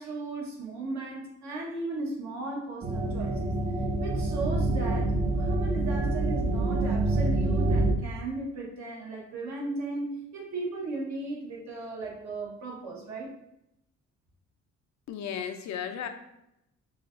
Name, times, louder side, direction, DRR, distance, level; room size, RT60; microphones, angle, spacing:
voice 1, 0.0-3.5 4.0-13.3, right 2 dB, 70° right, -2 dB, 1.3 m, -36 dB
sound 1, 2.8-7.9, right 2 dB, 25° right, 0.4 m, -26 dB
voice 2, 15.1-16.1, left 8 dB, 65° left, 7 dB, 0.5 m, -34 dB
5.7 x 2.4 x 2.5 m, 0.84 s
cardioid pair, 90°, 30 cm